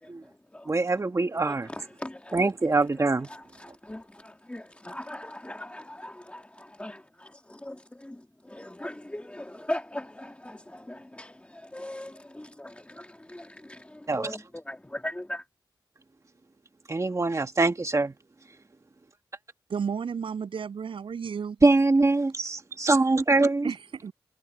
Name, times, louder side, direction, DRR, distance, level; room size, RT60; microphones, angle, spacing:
voice 1, 0.0-0.7 1.4-2.4 2.7-15.4, left 1 dB, 15° left, 1.7 m, -40 dB
voice 2, 0.7-1.7 2.3-3.3 14.1-14.3 16.9-18.1 21.6-23.7, right 3 dB, 35° right, 1.5 m, -23 dB
voice 3, 19.7-21.6 23.6-24.1, right 6 dB, 90° right, 8.0 m, -32 dB
cardioid pair, 60°, 9 cm